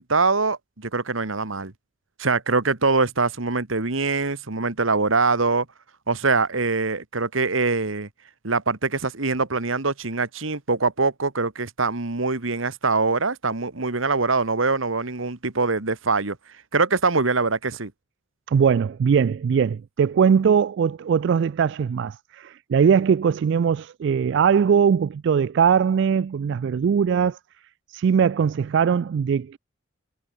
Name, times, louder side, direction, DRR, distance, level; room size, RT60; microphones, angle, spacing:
voice 1, 0.0-1.7 2.2-5.7 6.1-8.1 8.4-16.4 16.7-17.9, right 3 dB, 75° right, 1.8 m, -23 dB
voice 2, 18.5-27.4 27.9-29.6, right 7 dB, 60° right, 0.3 m, -20 dB
head